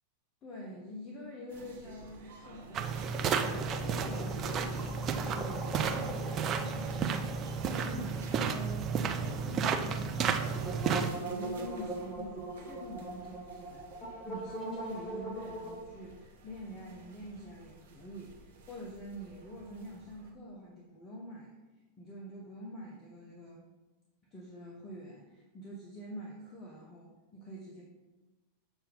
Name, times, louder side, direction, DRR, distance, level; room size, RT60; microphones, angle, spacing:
voice 1, 0.4-5.0 5.3-21.5 22.0-23.6 24.3-27.8, equal, 25° left, -3 dB, 1.0 m, -46 dB
sound 1, 1.5-20.3, right 2 dB, 60° right, 1.0 m, -53 dB
sound 2, 2.7-11.1, right 6 dB, 30° right, 0.5 m, -32 dB
sound 3, 3.1-8.9 9.1-9.2 10.5-15.8, right 2 dB, ahead, 1.0 m, -41 dB
6.9 x 2.9 x 5.4 m, 1.2 s
figure-of-eight pair, 90°, 0 cm